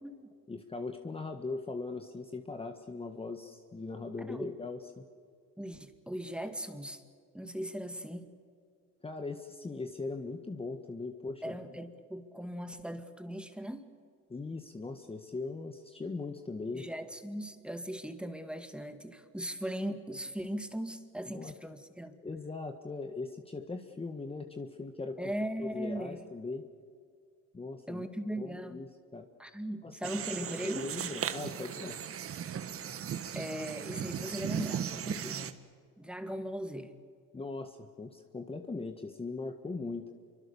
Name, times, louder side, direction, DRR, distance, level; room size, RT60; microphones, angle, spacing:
voice 1, 0.5-5.0 9.0-11.8 14.3-16.9 21.2-21.6 22.2-25.2 25.6-26.7 27.5-28.1 28.4-29.3 29.8-30.0 30.4-32.0 37.3-40.1, left 3 dB, 20° left, 6 dB, 1.5 m, -40 dB
voice 2, 4.2-4.5 5.6-7.0 7.3-8.3 11.4-13.9 16.7-22.2 25.2-26.2 27.9-28.8 29.4-30.9 33.3-35.6 36.0-36.9, equal, 5° right, 7 dB, 2.2 m, -39 dB
sound 1, 30.0-35.5, right 8 dB, 45° right, 1.6 m, -37 dB
27.5 x 24.5 x 7.1 m, 2.1 s
cardioid pair, 100°, 32 cm